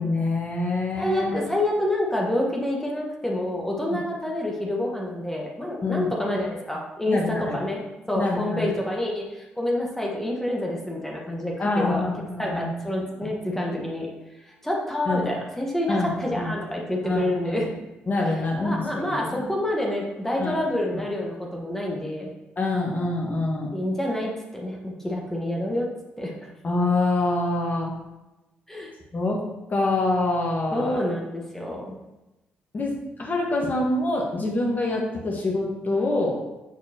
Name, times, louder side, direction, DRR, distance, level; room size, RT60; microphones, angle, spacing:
voice 1, 0.0-1.4 3.9-4.0 5.8-6.1 7.1-7.6 8.2-8.7 11.6-12.7 15.1-15.2 15.9-16.5 17.0-17.6 18.1-19.5 20.4-20.6 20.9-21.0 22.6-23.7 26.6-27.9 29.1-29.4 29.7-31.0 32.7-36.4, left 2 dB, 35° left, -1 dB, 1.6 m, -26 dB
voice 2, 1.0-7.8 8.1-12.0 12.4-14.1 14.4-17.7 18.6-22.3 23.7-25.9 26.2-26.3 28.7-28.9 30.7-31.9, left 1 dB, 5° left, -2 dB, 1.5 m, -28 dB
8.0 x 4.5 x 3.0 m, 1.0 s
figure-of-eight pair, 40°, 5 cm